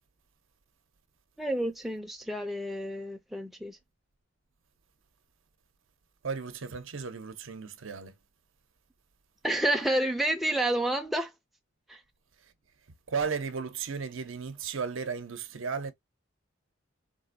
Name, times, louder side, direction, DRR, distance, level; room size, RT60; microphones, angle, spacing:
voice 1, 1.4-3.8 9.4-11.3 11.9-12.0, right 1 dB, ahead, 0.3 m, -29 dB
voice 2, 6.2-8.2 12.4-12.5 13.1-15.9, right 5 dB, 70° right, 0.7 m, -35 dB
3.8 x 2.5 x 2.5 m
head